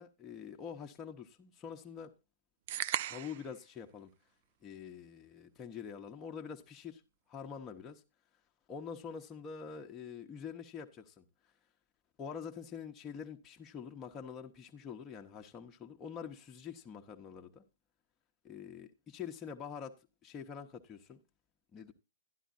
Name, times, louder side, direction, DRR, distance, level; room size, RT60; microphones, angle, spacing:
voice 1, 0.0-2.1 3.1-4.1 4.6-7.0 7.3-8.0 8.7-11.2 12.2-17.6 18.4-19.9 20.2-21.2 21.7-21.9, left 7 dB, 20° left, 0.9 m, -45 dB
sound 1, 2.7-3.5, right 13 dB, 50° right, 0.4 m, -36 dB
11.5 x 11.0 x 2.6 m
figure-of-eight pair, 115°, 0 cm